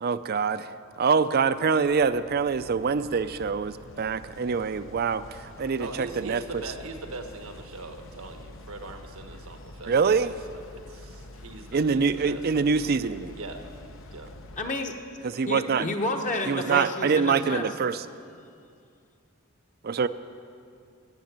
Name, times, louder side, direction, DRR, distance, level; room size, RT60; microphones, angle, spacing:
voice 1, 0.0-0.7 1.0-6.4 9.9-10.3 11.7-13.3 15.2-15.9 16.5-18.0 19.8-20.1, right 5 dB, 50° right, 13 dB, 0.5 m, -25 dB
sound 1, 1.5-14.7, left 1 dB, 65° left, 0.9 m, -47 dB
voice 2, 5.8-10.4 10.7-12.4 13.3-13.6 14.1-14.3, right 3 dB, 90° right, 5 dB, 1.3 m, -41 dB
voice 3, 14.6-14.9 15.5-17.8, left 1 dB, 35° left, 4 dB, 1.1 m, -30 dB
16.5 x 7.6 x 9.4 m, 2.4 s
head